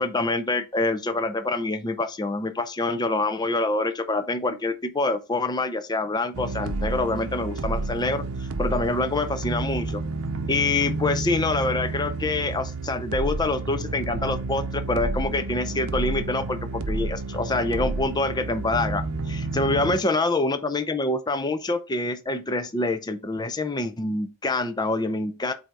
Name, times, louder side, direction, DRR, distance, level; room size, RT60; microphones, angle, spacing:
voice 1, 0.0-8.2 8.6-10.0 10.5-25.5, left 2 dB, 20° left, 0.5 m, -26 dB
sound 1, 6.3-20.0, right 3 dB, 80° right, 0.7 m, -30 dB
7.9 x 2.7 x 4.6 m
head